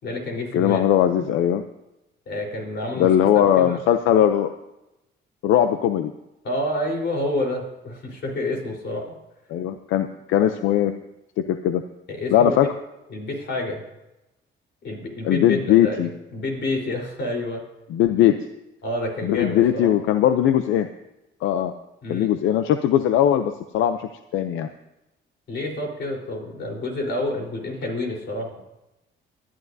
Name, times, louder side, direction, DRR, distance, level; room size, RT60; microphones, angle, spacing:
voice 1, 0.0-0.8 2.3-3.1 3.3-3.8 6.4-9.0 12.1-12.5 13.1-13.8 14.8-17.6 18.8-19.9 22.0-22.3 25.5-28.6, left 1 dB, 60° left, 0 dB, 4.0 m, -28 dB
voice 2, 0.5-1.6 3.0-4.5 5.4-6.1 9.5-10.9 11.5-11.8 12.3-12.7 15.2-16.1 17.9-18.4 19.2-20.9 21.4-21.7 22.1-24.7, left 10 dB, 90° left, 9 dB, 0.5 m, -19 dB
20.0 x 11.5 x 2.7 m, 0.93 s
cardioid pair, 90°, 20 cm